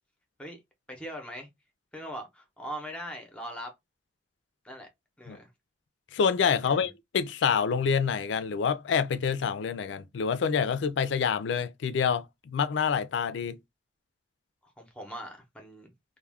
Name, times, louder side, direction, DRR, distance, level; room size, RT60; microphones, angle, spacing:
voice 1, 0.9-1.5 1.9-3.7 4.6-4.9 5.2-5.5 6.6-6.9 14.6-15.9, equal, 5° left, 0.6 m, -41 dB
voice 2, 6.1-13.6, left 6 dB, 70° left, 0.4 m, -27 dB
2.3 x 2.1 x 3.3 m
head